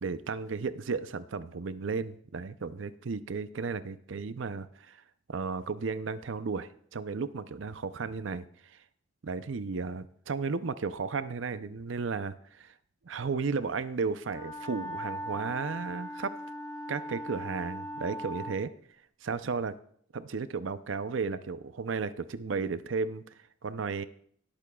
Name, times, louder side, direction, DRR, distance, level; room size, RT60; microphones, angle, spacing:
voice 1, 0.0-5.0 5.3-8.8 9.2-12.7 13.0-16.3 16.9-18.7 19.2-19.7 20.1-23.2 23.6-24.0, right 4 dB, 70° right, 14 dB, 0.6 m, -34 dB
Wind instrument woodwind instrument, 14.2-18.6, equal, 20° left, 1.4 m, -39 dB
19.5 x 8.7 x 2.3 m, 0.63 s
head